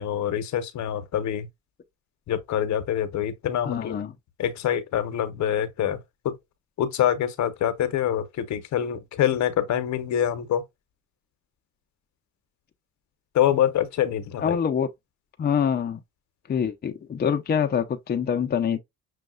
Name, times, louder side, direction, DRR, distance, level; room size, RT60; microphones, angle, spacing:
voice 1, 0.0-1.5 2.3-4.0 4.4-6.0 6.2-6.4 6.8-10.6 13.3-14.6, left 10 dB, 70° left, 0.9 m, -25 dB
voice 2, 3.7-4.1 14.4-14.9 15.4-16.0 16.5-18.8, left 7 dB, 30° left, 0.6 m, -25 dB
6.3 x 2.3 x 2.3 m
cardioid pair, 90°, 30 cm